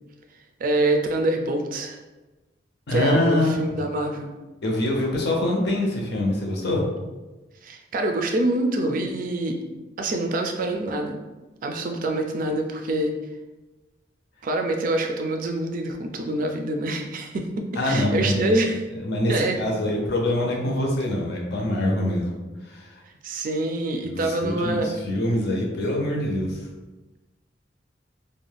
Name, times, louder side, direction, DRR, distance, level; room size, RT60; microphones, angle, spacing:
voice 1, 0.6-2.0 2.9-4.3 7.6-9.6 10.0-11.2 11.6-13.2 14.4-18.8 19.3-19.6 23.2-24.9, right 1 dB, 50° right, 4 dB, 0.4 m, -25 dB
voice 2, 2.9-3.8 4.6-6.8 17.8-18.6 19.0-22.3 22.6-23.0 24.0-26.7, left 1 dB, 65° left, 0 dB, 0.6 m, -24 dB
2.5 x 2.2 x 3.2 m, 1.1 s
head